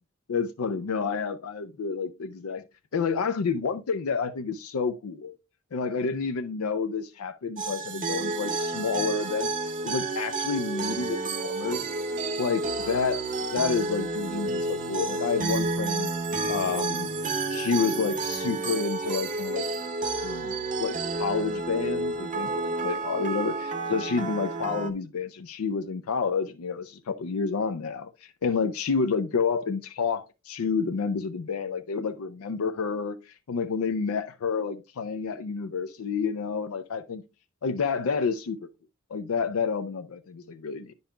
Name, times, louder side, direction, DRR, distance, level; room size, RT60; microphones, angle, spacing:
voice 1, 0.3-2.6 2.9-5.4 5.7-9.5 9.8-11.9 12.4-13.2 13.5-16.1 16.5-17.1 17.5-19.7 20.2-37.2 37.6-38.7 39.1-40.9, left 5 dB, 85° left, 0.5 m, -29 dB
sound 1, 7.6-24.9, right 3 dB, 40° right, 0.8 m, -30 dB
10.0 x 5.4 x 2.2 m
head